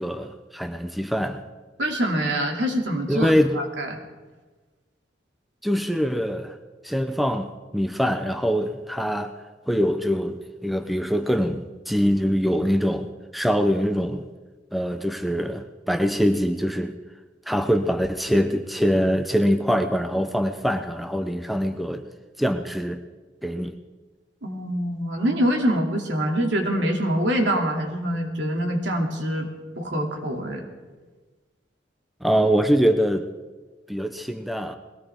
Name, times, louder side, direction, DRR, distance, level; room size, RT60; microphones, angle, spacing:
voice 1, 0.0-1.4 3.1-3.6 5.6-6.6 6.8-7.5 7.7-9.3 9.7-14.2 14.7-17.0 17.5-22.0 22.4-23.0 23.4-23.7 32.2-33.3 33.9-34.8, equal, ahead, 7 dB, 0.5 m, -23 dB
voice 2, 1.8-3.9 24.4-29.5 29.8-30.6, equal, 70° right, 1 dB, 2.6 m, -25 dB
21.5 x 17.5 x 3.6 m, 1.3 s
head